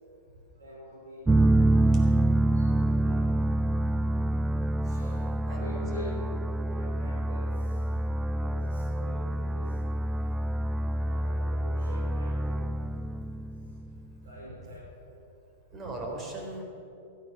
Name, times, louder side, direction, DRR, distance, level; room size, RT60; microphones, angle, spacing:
voice 1, 0.6-3.2 4.8-6.3 6.7-7.8 8.3-9.7 11.0-12.8 14.2-14.8, equal, 75° right, -6 dB, 4.6 m, -44 dB
sound 1, 1.3-13.9, right 1 dB, 10° right, 0.4 m, -27 dB
voice 2, 5.0-5.6 7.0-7.2 15.7-16.6, right 2 dB, 30° right, 1 dB, 3.9 m, -39 dB
16.0 x 12.5 x 6.0 m, 2.8 s
hypercardioid pair, 110°, 0 cm